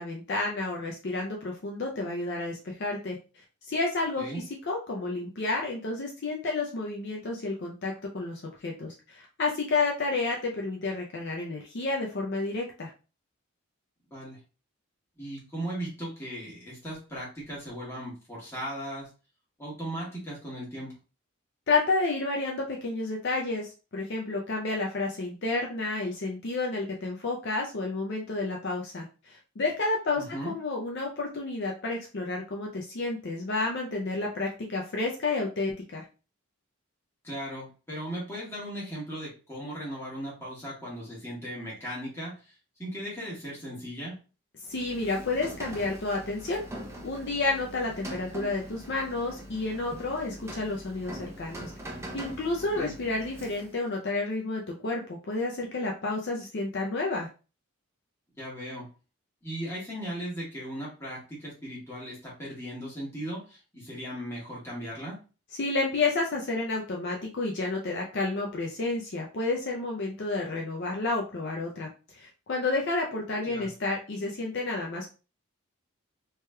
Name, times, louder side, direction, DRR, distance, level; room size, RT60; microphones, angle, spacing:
voice 1, 0.0-3.2 3.7-12.9 21.7-36.0 44.7-46.6 47.0-51.7 52.1-57.3 65.6-75.1, left 3 dB, 50° left, -1 dB, 0.5 m, -30 dB
voice 2, 15.2-19.1 19.6-20.9 30.2-30.5 37.2-42.5 42.8-44.2 52.8-52.9 58.4-58.9 59.4-65.2 73.4-73.7, equal, 10° left, -6 dB, 1.4 m, -37 dB
Rain, 44.6-53.9, right 1 dB, 15° right, 0.5 m, -43 dB
3.2 x 2.9 x 2.2 m, 0.34 s
head